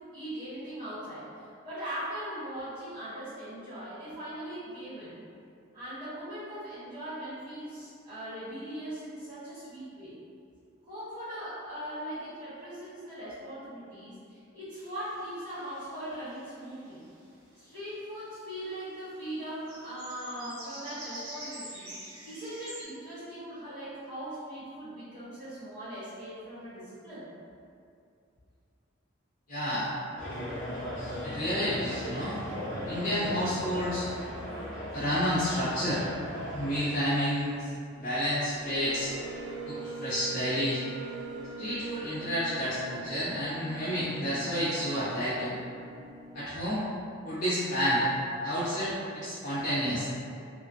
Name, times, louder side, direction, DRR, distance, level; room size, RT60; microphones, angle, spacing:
voice 1, 0.1-1.2 1.6-5.1 5.7-10.1 10.8-17.0 17.6-21.9 22.2-27.2, right 1 dB, 20° right, -20 dB, 1.5 m, -40 dB
sound 1, 14.7-17.9 18.3-18.7 18.9-22.8, right 1 dB, 85° right, 0.8 m, -47 dB
voice 2, 29.5-29.9 31.2-32.4 32.9-34.1 34.9-36.0 36.5-37.7 38.0-39.1 39.7-40.8 41.6-45.5 46.3-46.8 47.2-48.1 48.4-50.1, equal, 40° left, -12 dB, 0.6 m, -30 dB
sound 2, 30.2-36.8, equal, 35° right, 1.1 m, -37 dB
sound 3, 38.0-46.4, right 3 dB, 55° right, 0.5 m, -42 dB
3.0 x 2.1 x 2.5 m, 2.4 s
head